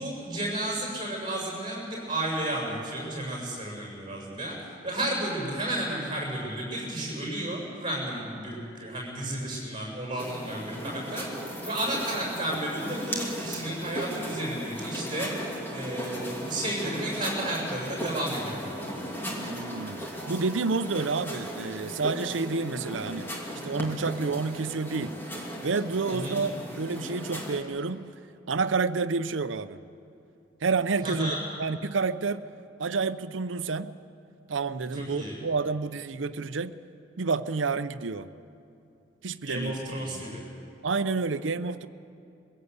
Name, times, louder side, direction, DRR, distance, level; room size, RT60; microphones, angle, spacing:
voice 1, 0.0-19.2 26.1-26.4 31.0-31.4 34.9-35.3 39.5-40.4, right 1 dB, 25° right, -2 dB, 7.0 m, -32 dB
sound 1, 10.2-27.6, equal, 10° left, 2.6 m, -37 dB
voice 2, 19.4-23.3 23.6-25.2 25.6-28.1 28.5-29.8 30.6-32.4 32.8-33.9 34.5-36.8 37.2-38.3 39.2-39.7 40.1-40.3 40.8-41.9, right 4 dB, 85° right, 13 dB, 0.7 m, -29 dB
23.0 x 16.5 x 8.2 m, 2.7 s
head